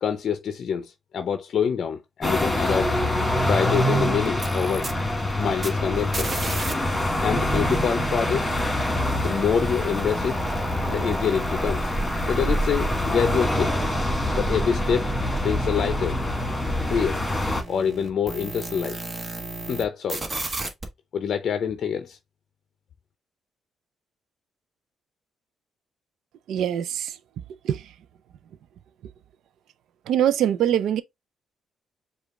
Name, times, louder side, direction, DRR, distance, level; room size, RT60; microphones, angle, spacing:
voice 1, 0.0-2.9 3.5-4.9 5.4-6.4 7.2-8.5 9.2-10.4 10.9-11.9 12.3-13.7 14.3-15.1 15.4-16.2 16.9-17.2 17.7-19.0 19.7-20.2 21.1-22.2, left 7 dB, 60° left, 0.5 m, -26 dB
sound 1, 2.2-17.6, left 1 dB, 10° left, 1.7 m, -25 dB
sound 2, 4.3-6.7 7.0-19.8 20.1-20.8, right 3 dB, 30° right, 1.2 m, -37 dB
voice 2, 26.5-27.1 27.6-27.8 30.1-31.0, right 10 dB, 75° right, 0.4 m, -23 dB
5.0 x 2.4 x 3.6 m
cardioid pair, 90°, 0 cm